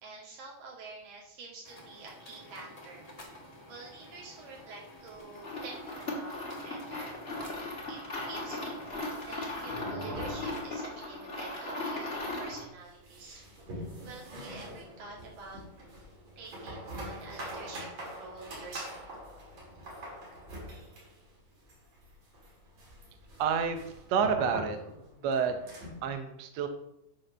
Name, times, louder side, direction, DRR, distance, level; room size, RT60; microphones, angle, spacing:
voice 1, 0.0-3.1 3.7-6.4 6.6-7.2 7.9-13.5 13.7-15.6 16.4-19.1, right 3 dB, 65° right, -3 dB, 4.0 m, -47 dB
sound 1, 1.6-9.8, left 1 dB, 85° left, 0.3 m, -51 dB
sound 2, 5.3-12.7, left 2 dB, 20° left, 1.6 m, -37 dB
sound 3, 8.9-11.2 11.5-11.6 11.9-12.0 12.5-26.1, equal, 45° right, 4.0 m, -44 dB
voice 2, 23.4-24.8 25.2-25.6 26.0-26.7, right 6 dB, 85° right, 7 dB, 1.5 m, -29 dB
9.3 x 4.5 x 6.6 m, 0.78 s
omnidirectional pair, 4.5 m